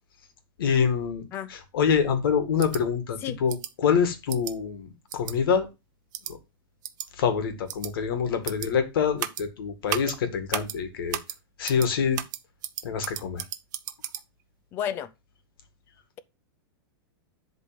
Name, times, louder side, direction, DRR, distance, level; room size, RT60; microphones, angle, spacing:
voice 1, 0.6-5.7 6.3-6.4 7.2-11.2 11.6-12.2 12.8-13.4, left 6 dB, 65° left, 2.0 m, -26 dB
sound 1, 2.6-2.8 3.5-3.7 4.3-4.5 5.1-5.3 6.1-6.3 6.8-7.1 7.7-7.9 8.4-8.7 9.2-9.4 9.9-10.1 10.5-10.8 11.1-11.4 11.6-11.9 12.1-14.2, right 12 dB, 50° right, 0.8 m, -33 dB
voice 2, 14.7-15.1, left 9 dB, 15° left, 0.4 m, -31 dB
10.5 x 3.9 x 5.1 m
supercardioid pair, 175°, 13 cm